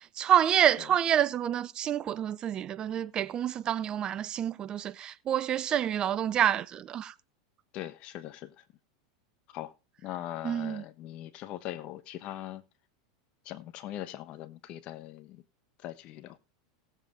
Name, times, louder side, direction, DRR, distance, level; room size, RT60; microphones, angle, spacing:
voice 1, 0.0-7.1 10.4-10.8, right 10 dB, 35° right, 0.4 m, -28 dB
voice 2, 7.7-8.6 9.5-9.7 10.0-12.6 13.4-15.4 15.8-16.4, left 13 dB, 45° left, 1.1 m, -41 dB
18.0 x 7.5 x 2.6 m
hypercardioid pair, 115°, 3 cm